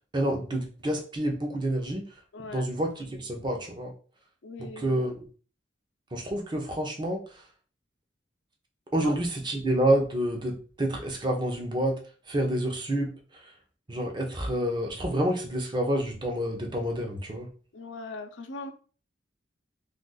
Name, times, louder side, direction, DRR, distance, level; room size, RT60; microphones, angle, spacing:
voice 1, 0.0-2.0 2.5-3.9 4.6-5.3 6.1-7.4 8.9-12.0 12.3-13.5 13.9-17.5, right 1 dB, 25° right, 1 dB, 0.6 m, -28 dB
voice 2, 2.3-2.6 4.4-5.0 9.0-9.1 17.7-18.7, left 3 dB, 80° left, 7 dB, 0.5 m, -40 dB
2.5 x 2.4 x 3.8 m, 0.38 s
head